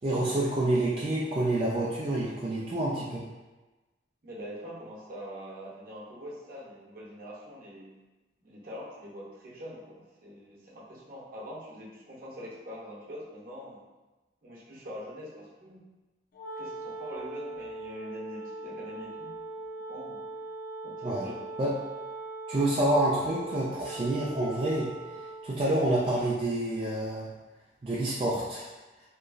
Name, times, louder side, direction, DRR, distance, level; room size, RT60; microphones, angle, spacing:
voice 1, 0.0-3.2 21.0-21.3 21.6-21.7 22.5-24.9 25.4-27.3 27.8-28.7, right 1 dB, 30° right, -7 dB, 0.4 m, -28 dB
voice 2, 4.2-7.9 8.4-13.8 14.4-15.8 16.6-19.3 19.9-20.2 20.8-21.4, equal, 55° right, -6 dB, 0.7 m, -44 dB
Wind instrument woodwind instrument, 16.3-25.5, right 2 dB, 55° left, 0.4 m, -40 dB
2.9 x 2.3 x 2.4 m, 1.1 s
head